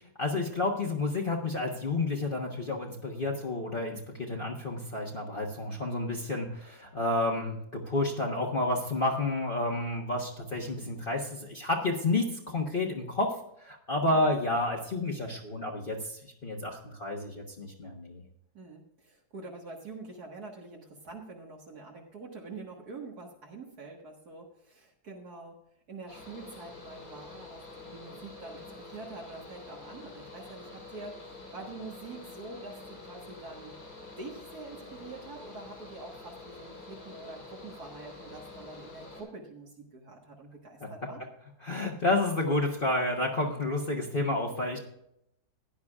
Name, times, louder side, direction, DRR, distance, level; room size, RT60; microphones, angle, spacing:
voice 1, 0.2-13.3 13.6-18.2 40.8-40.9 41.6-44.8, left 2 dB, 35° left, -1 dB, 1.3 m, -30 dB
voice 2, 18.5-25.6 25.9-33.8 34.2-41.2, right 3 dB, 65° right, -1 dB, 2.1 m, -45 dB
Mechanical fan, 26.1-39.2, left 3 dB, 85° left, 5.3 m, -47 dB
16.0 x 10.5 x 2.4 m, 0.78 s
omnidirectional pair, 1.8 m